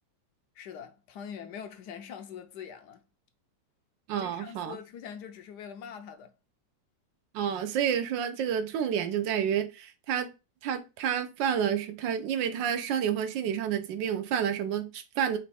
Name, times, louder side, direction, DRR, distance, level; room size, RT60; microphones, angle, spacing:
voice 1, 0.5-3.0 4.2-6.3, left 8 dB, 70° left, 1.1 m, -43 dB
voice 2, 4.1-4.8 7.3-10.3 10.6-15.4, right 8 dB, 80° right, 1.3 m, -29 dB
5.1 x 2.3 x 4.2 m
omnidirectional pair, 2.0 m